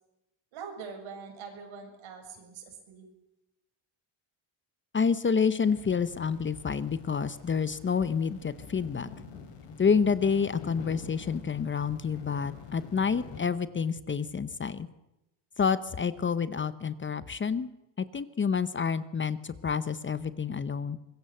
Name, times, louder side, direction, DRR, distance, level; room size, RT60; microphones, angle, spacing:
voice 1, 0.5-3.1, right 5 dB, 75° right, 4 dB, 7.5 m, -43 dB
voice 2, 4.9-9.1 9.8-14.9 15.6-17.7 18.0-21.0, left 6 dB, 25° left, 14 dB, 0.8 m, -28 dB
sound 1, 5.6-13.4, left 5 dB, 65° left, 6.5 m, -47 dB
24.5 x 21.5 x 7.9 m, 0.92 s
cardioid pair, 160°, 47 cm